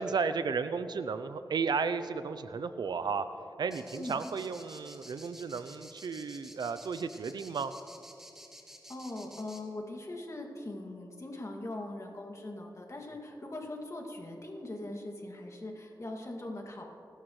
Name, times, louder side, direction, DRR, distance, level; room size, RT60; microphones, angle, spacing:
voice 1, 0.0-3.3 3.6-7.7, right 5 dB, 80° right, 11 dB, 0.5 m, -33 dB
sound 1, 3.7-9.6, equal, 5° right, 2.4 m, -51 dB
voice 2, 8.9-16.8, left 2 dB, 45° left, 1 dB, 2.3 m, -41 dB
26.0 x 12.0 x 3.2 m, 2.9 s
cardioid pair, 55°, 7 cm